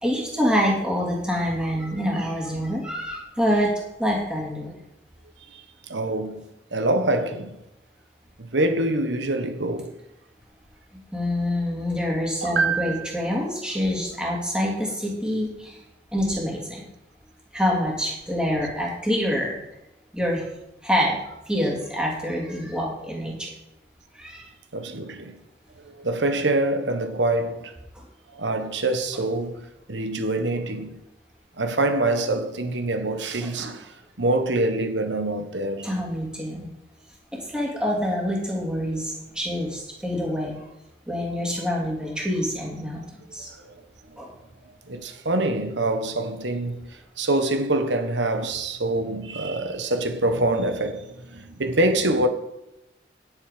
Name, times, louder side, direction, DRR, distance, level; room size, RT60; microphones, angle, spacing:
voice 1, 0.0-3.7 4.0-4.7 11.1-15.8 16.1-16.8 17.5-19.6 20.1-20.4 20.8-23.5 24.1-24.5 27.9-28.0 33.4-33.5 35.8-36.7 37.4-40.6 41.1-43.0 43.3-43.5 44.2-44.3, equal, 5° right, 2.8 m, -26 dB
voice 2, 5.5-6.5 6.7-7.6 8.4-10.0 12.4-13.2 24.7-25.4 25.8-27.7 28.3-31.0 31.6-35.9 43.6-43.7 44.9-52.3, right 2 dB, 85° right, 1.3 m, -25 dB
10.5 x 8.1 x 5.1 m
head